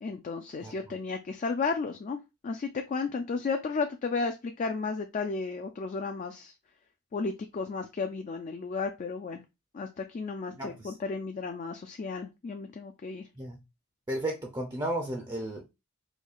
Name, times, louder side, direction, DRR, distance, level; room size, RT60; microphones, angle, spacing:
voice 1, 0.0-2.2 2.4-6.5 7.1-9.4 9.7-13.2, left 4 dB, 35° left, 5 dB, 0.3 m, -33 dB
voice 2, 10.6-10.9 13.4-13.6 14.1-15.6, right 1 dB, 20° right, 2 dB, 0.5 m, -34 dB
4.4 x 2.7 x 2.3 m, 0.24 s
head